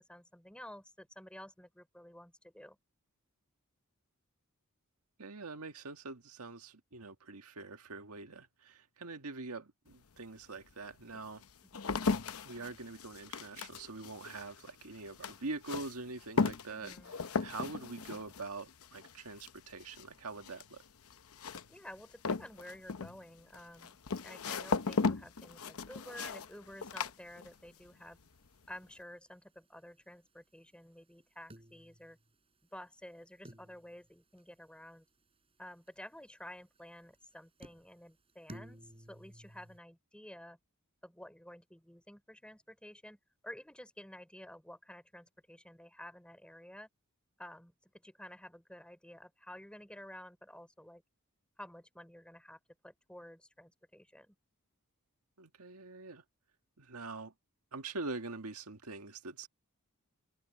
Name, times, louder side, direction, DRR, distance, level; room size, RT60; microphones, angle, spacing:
voice 1, 0.0-2.8 11.7-11.9 16.7-17.1 21.7-24.0 24.2-28.2 28.7-32.2 32.7-35.1 35.6-40.6 41.0-46.9 47.4-51.0 51.6-54.4, left 1 dB, 5° left, 3.9 m, -52 dB
voice 2, 5.2-11.4 12.4-17.1 17.4-20.8 55.4-56.2 56.8-57.3 57.7-59.5, right 3 dB, 80° right, 1.7 m, -44 dB
sound 1, 9.9-10.0 10.7-27.9 28.1-28.7, left 4 dB, 70° left, 0.8 m, -37 dB
sound 2, 27.0-39.8, right 1 dB, 25° right, 5.1 m, -59 dB
open air
head